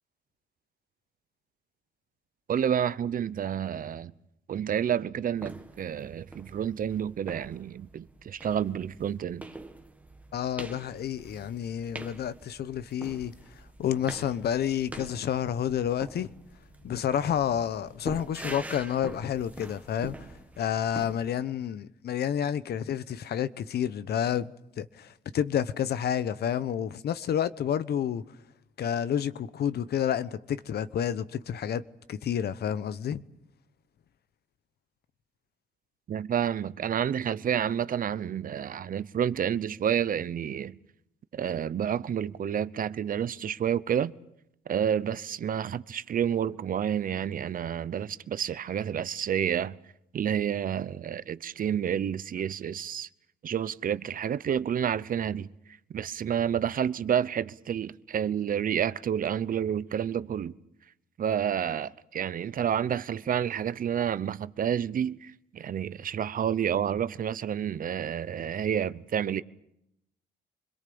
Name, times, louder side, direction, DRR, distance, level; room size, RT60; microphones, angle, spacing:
voice 1, 2.5-4.1 4.5-9.4 36.1-40.8 41.3-44.1 44.7-49.8 50.1-53.1 53.4-55.5 55.9-60.5 61.2-69.4, right 9 dB, 55° right, 0.8 m, -29 dB
sound 1, 5.4-21.3, right 2 dB, 10° right, 1.8 m, -45 dB
voice 2, 10.3-13.3 13.8-16.3 16.8-20.3 20.6-28.2 28.8-31.8 32.1-33.2, left 9 dB, 65° left, 1.0 m, -29 dB
27.0 x 22.0 x 7.0 m
cardioid pair, 100°, 18 cm